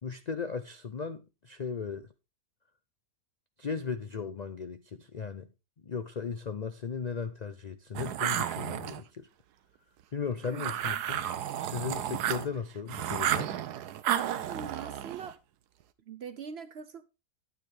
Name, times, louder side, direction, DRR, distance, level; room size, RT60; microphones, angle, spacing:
voice 1, 0.0-2.1 3.6-5.5 5.8-9.3 10.1-11.2 11.5-13.5, left 5 dB, 75° left, 0.3 m, -36 dB
sound 1, 7.9-9.0 10.4-12.6 12.9-15.3, right 10 dB, 90° right, 1.3 m, -32 dB
voice 2, 10.5-11.0 14.4-15.4 16.0-17.0, right 6 dB, 60° right, 0.7 m, -43 dB
9.7 x 9.2 x 3.4 m
omnidirectional pair, 1.6 m